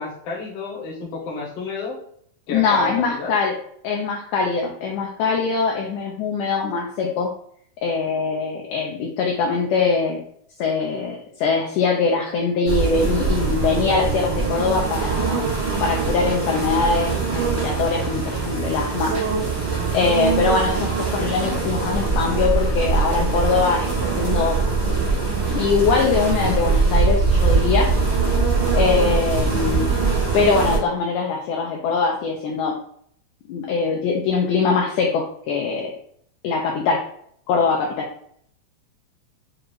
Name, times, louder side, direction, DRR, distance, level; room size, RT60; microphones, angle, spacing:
voice 1, 0.0-2.0 2.5-3.3, left 4 dB, 65° left, -3 dB, 1.6 m, -31 dB
voice 2, 2.5-3.6 3.8-7.3 7.8-10.2 10.6-15.4 15.8-19.1 19.9-23.9 24.2-24.6 25.5-27.9 28.7-29.9 30.3-32.7 33.5-35.9 36.4-37.0 37.5-38.1, left 4 dB, 85° left, 0 dB, 1.8 m, -22 dB
sound 1, 12.6-30.8, right 4 dB, 45° right, 0.5 m, -22 dB
6.2 x 2.5 x 3.0 m, 0.65 s
omnidirectional pair, 4.2 m